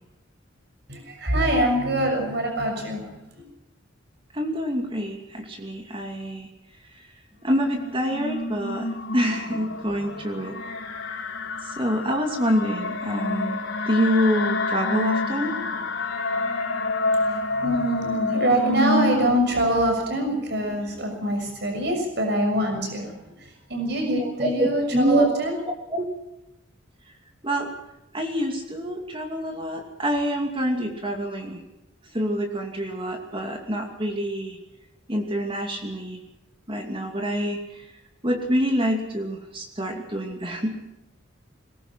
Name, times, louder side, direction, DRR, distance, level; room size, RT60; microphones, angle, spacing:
voice 1, 0.9-3.2 17.1-25.6, right 1 dB, 60° right, 4 dB, 6.6 m, -24 dB
voice 2, 4.3-6.5 7.4-10.6 11.7-13.6 13.9-15.6 24.2-25.3 25.9-26.0 27.4-27.7 28.1-31.6 32.1-34.6 35.1-36.2 36.7-37.8 38.2-40.8, equal, 25° right, 2 dB, 2.6 m, -26 dB
sound 1, 7.5-19.4, left 2 dB, 75° left, 3.6 m, -28 dB
22.0 x 20.0 x 5.9 m, 0.91 s
head